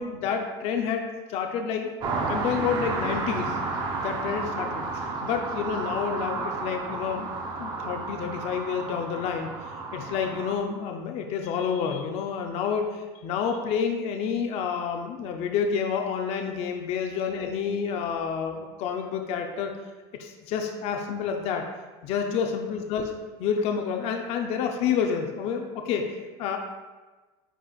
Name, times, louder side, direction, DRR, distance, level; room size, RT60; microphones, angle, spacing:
voice 1, 0.0-1.9 2.2-3.6 4.0-7.3 7.6-19.7 20.2-21.6 22.0-23.1 23.4-26.6, left 6 dB, 50° left, 4 dB, 0.6 m, -29 dB
sound 1, 2.0-10.5, right 3 dB, 35° right, 0.8 m, -32 dB
10.0 x 4.3 x 2.4 m, 1.2 s
cardioid pair, 155°, 14 cm